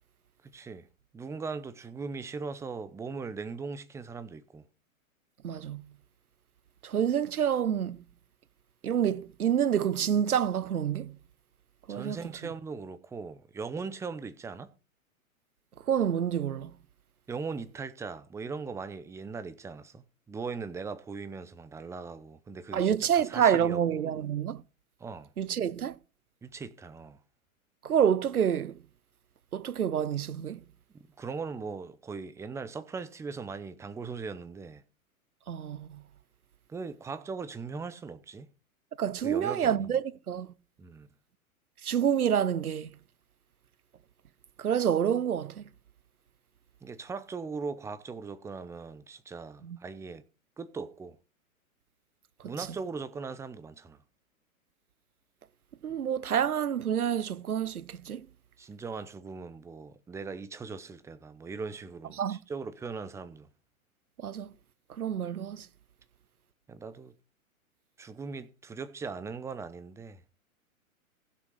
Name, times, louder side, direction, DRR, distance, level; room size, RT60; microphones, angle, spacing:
voice 1, 0.5-0.9 1.1-4.6 11.9-14.7 17.3-24.2 25.0-25.3 26.4-27.2 31.2-34.8 36.7-38.5 39.2-40.0 40.8-41.1 46.8-50.2 50.6-51.2 52.4-54.0 58.6-63.5 66.7-67.1 68.0-70.2, right 4 dB, 5° right, 0.6 m, -39 dB
voice 2, 5.4-5.9 6.8-8.0 8.8-11.2 11.9-12.2 15.9-16.7 22.7-24.6 25.4-26.0 27.8-28.8 29.5-30.6 35.5-36.0 39.0-40.5 41.8-42.9 44.6-45.6 49.6-49.8 55.8-58.2 62.2-62.4 64.2-64.5 65.0-65.7, right 8 dB, 85° right, 0.8 m, -28 dB
15.5 x 6.5 x 4.9 m
figure-of-eight pair, 115°, 43 cm